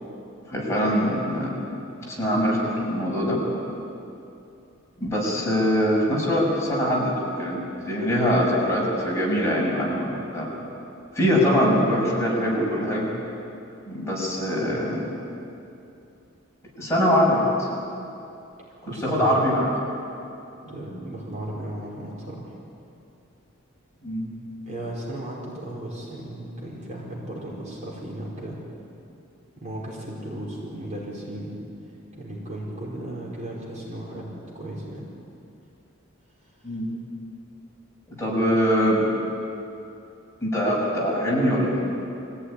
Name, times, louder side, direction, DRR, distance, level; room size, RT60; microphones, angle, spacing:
voice 1, 0.5-1.5 2.1-3.4 5.0-10.5 11.1-13.1 13.9-15.0 16.8-17.7 18.8-19.7 24.0-24.3 36.6-36.9 38.2-39.0 40.4-41.8, equal, 15° left, -5 dB, 6.5 m, -23 dB
voice 2, 18.8-19.4 20.6-22.6 24.7-28.6 29.6-31.6 32.2-34.2 34.5-35.1, right 1 dB, 35° right, -4 dB, 5.0 m, -35 dB
24.0 x 16.5 x 10.0 m, 2.7 s
head